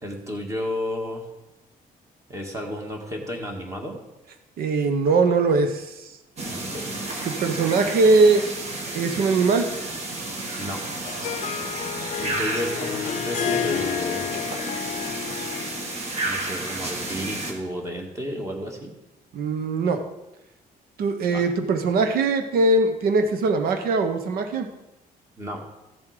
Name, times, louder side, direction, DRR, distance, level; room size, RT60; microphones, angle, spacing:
voice 1, 0.0-1.2 2.3-4.0 6.5-7.0 10.5-10.8 12.2-14.3 16.2-18.9 21.3-21.5 25.4-25.6, equal, 20° right, 1 dB, 2.0 m, -32 dB
voice 2, 4.6-6.1 7.2-8.5 8.9-9.7 19.3-20.0 21.0-24.7, right 3 dB, 75° right, 7 dB, 1.2 m, -21 dB
sound 1, 6.4-17.5, right 2 dB, 45° right, 2.1 m, -31 dB
Harp, 10.6-16.0, left 10 dB, 50° left, 0.6 m, -30 dB
14.0 x 7.3 x 5.1 m, 0.98 s
cardioid pair, 140°, 15 cm